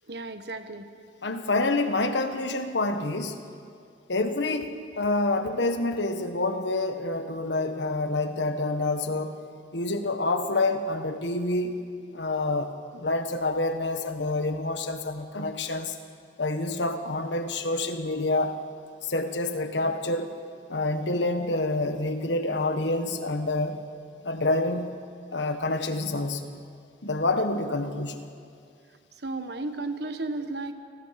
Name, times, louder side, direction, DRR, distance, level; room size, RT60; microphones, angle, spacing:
voice 1, 0.1-0.9 29.2-30.7, right 2 dB, 60° right, 8 dB, 1.3 m, -33 dB
voice 2, 1.2-3.4 4.1-9.4 9.7-11.8 12.1-16.0 16.4-18.6 19.0-20.3 20.7-23.8 24.2-24.9 25.3-26.5 27.0-28.2, left 2 dB, 70° left, 7 dB, 1.5 m, -27 dB
28.5 x 19.5 x 5.9 m, 2.4 s
head